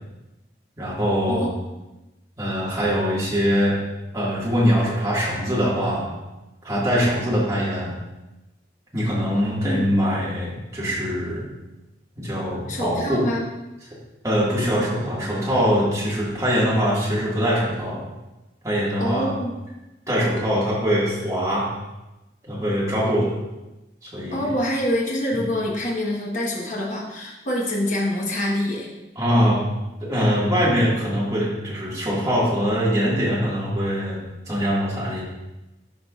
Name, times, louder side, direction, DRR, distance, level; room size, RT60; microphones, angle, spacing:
voice 1, 0.8-1.5 2.4-3.8 4.1-6.1 6.6-7.9 8.9-11.4 12.2-13.3 14.2-18.0 18.6-19.3 20.1-21.7 22.4-23.3 24.0-24.5 29.2-29.6 30.0-35.2, equal, 20° right, -7 dB, 2.0 m, -22 dB
voice 2, 12.7-13.5 19.0-19.5 24.3-28.9, left 1 dB, 45° left, -3 dB, 1.2 m, -26 dB
11.0 x 4.8 x 2.5 m, 1.0 s
head